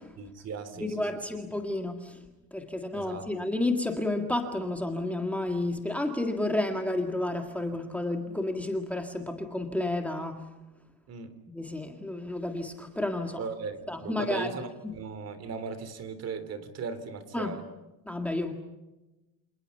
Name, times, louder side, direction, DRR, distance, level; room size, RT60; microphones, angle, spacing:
voice 1, 0.2-1.0 2.9-3.3 11.1-11.3 13.4-17.6, right 5 dB, 40° right, 12 dB, 3.6 m, -37 dB
voice 2, 0.8-2.2 2.5-10.5 11.5-13.4 13.9-14.5 14.8-14.9 17.3-17.6 18.1-18.5, left 2 dB, 5° left, 4 dB, 1.9 m, -31 dB
29.5 x 27.5 x 5.6 m, 1.0 s
cardioid pair, 155°, 38 cm